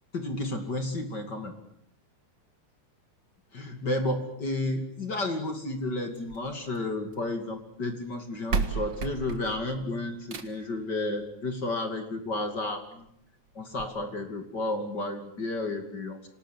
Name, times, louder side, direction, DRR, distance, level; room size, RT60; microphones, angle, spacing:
voice 1, 0.1-1.5 3.5-13.1 13.5-16.2, left 2 dB, 35° left, 7 dB, 3.0 m, -32 dB
sound 1, 6.1-7.3 8.1-8.2 8.5-10.8 12.1-12.2 12.7-12.8 13.1-13.2 13.7-13.9, right 5 dB, 45° right, 2.1 m, -34 dB
27.0 x 19.0 x 10.0 m, 0.70 s
omnidirectional pair, 3.4 m